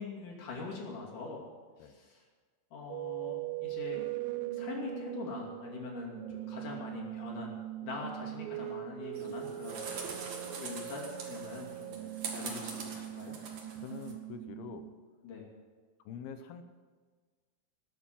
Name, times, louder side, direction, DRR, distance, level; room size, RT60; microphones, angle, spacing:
voice 1, 0.0-1.4 1.8-2.2 2.7-4.0 4.5-7.6 7.8-9.9 10.5-12.0 12.3-13.4 15.2-15.5, left 4 dB, 60° left, -1 dB, 4.1 m, -43 dB
sound 1, 2.9-14.9, right 14 dB, 75° right, 2.4 m, -41 dB
sound 2, 9.1-14.1, right 4 dB, 55° right, 2.9 m, -43 dB
voice 2, 13.8-14.9 16.1-16.6, left 7 dB, 85° left, 9 dB, 2.9 m, -45 dB
19.0 x 8.9 x 7.5 m, 1.5 s
omnidirectional pair, 4.3 m